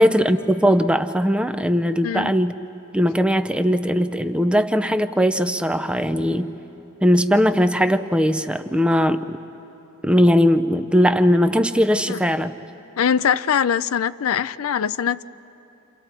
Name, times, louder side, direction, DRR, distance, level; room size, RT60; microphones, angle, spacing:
voice 1, 0.0-2.5 2.9-6.5 7.0-9.4 10.0-12.5, equal, 5° right, 10 dB, 0.5 m, -19 dB
voice 2, 2.0-2.4 12.1-12.2 13.0-15.2, left 8 dB, 90° left, 16 dB, 0.4 m, -22 dB
28.5 x 28.5 x 4.4 m, 2.9 s
head